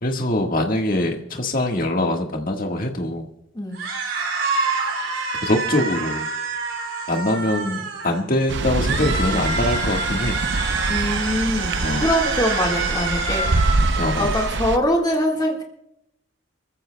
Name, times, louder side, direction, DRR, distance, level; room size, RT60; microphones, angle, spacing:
voice 1, 0.0-3.3 5.4-6.3 7.1-10.4 11.8-12.1 13.9-14.3, left 1 dB, 45° left, 3 dB, 1.6 m, -23 dB
sound 1, 3.7-8.2 8.7-14.5, right 4 dB, 80° right, 3.8 m, -27 dB
sound 2, 8.5-14.8, right 3 dB, 60° right, 0.7 m, -25 dB
voice 2, 10.9-13.9 14.2-15.6, equal, 20° left, 0 dB, 1.7 m, -23 dB
28.5 x 14.5 x 2.2 m, 0.80 s
head